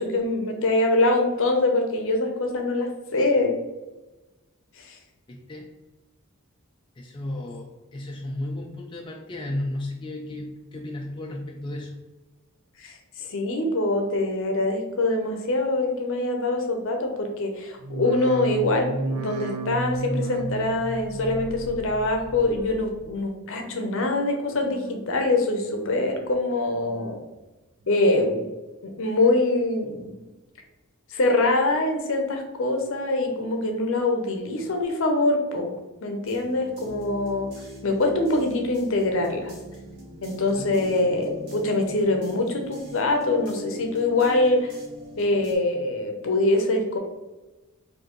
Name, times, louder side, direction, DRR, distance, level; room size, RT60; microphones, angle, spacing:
voice 1, 0.0-3.6 4.8-5.0 12.8-27.2 27.9-28.4 28.8-30.2 31.1-37.5 37.8-39.5 40.2-44.7 45.2-47.0, left 2 dB, 60° left, 3 dB, 0.7 m, -24 dB
voice 2, 5.3-5.7 7.0-12.0 40.5-40.7, left 1 dB, 20° left, 0 dB, 0.4 m, -34 dB
sound 1, 17.8-23.1 23.4-24.1 24.5-25.2 25.6-26.3 26.7-27.4 27.8-28.4 29.0-29.1, right 3 dB, 85° right, 0.5 m, -34 dB
sound 2, 36.2-45.6, equal, 50° right, 1.3 m, -42 dB
4.4 x 2.7 x 3.0 m, 1.1 s
head